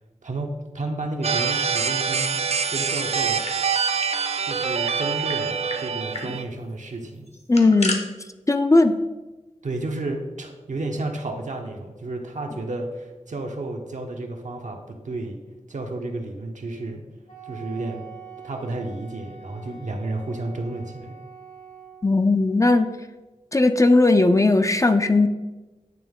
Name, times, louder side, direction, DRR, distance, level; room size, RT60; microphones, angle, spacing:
voice 1, 0.2-2.4 2.7-3.4 4.4-7.3 9.6-15.4 15.7-17.0 17.4-18.0 18.4-21.2, right 2 dB, 75° right, 3 dB, 0.8 m, -32 dB
sound 1, 1.2-6.4, right 6 dB, 55° right, 0.4 m, -25 dB
sound 2, 3.1-4.2 4.5-4.6 4.8-5.4 5.7-5.8 6.1-6.3 7.3-8.0, left 2 dB, 55° left, 0.9 m, -33 dB
voice 2, 7.5-8.0 8.5-8.9 22.0-22.9 23.5-25.3, left 2 dB, 25° left, 8 dB, 0.4 m, -17 dB
Wind instrument woodwind instrument, 17.3-22.2, right 6 dB, 75° left, 1.6 m, -44 dB
9.2 x 3.1 x 3.6 m, 1.2 s
wide cardioid pair, 55°, 13 cm